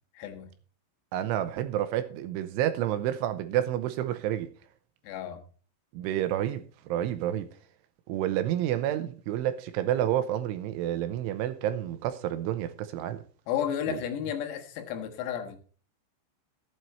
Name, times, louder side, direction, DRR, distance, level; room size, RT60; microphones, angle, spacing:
voice 1, 0.2-0.5 5.0-5.4 13.5-15.6, left 9 dB, 90° left, 4.3 m, -32 dB
voice 2, 1.1-4.5 5.9-7.5 8.1-13.2 13.9-14.0, right 12 dB, 80° right, 3.0 m, -29 dB
14.5 x 9.2 x 4.3 m
omnidirectional pair, 5.9 m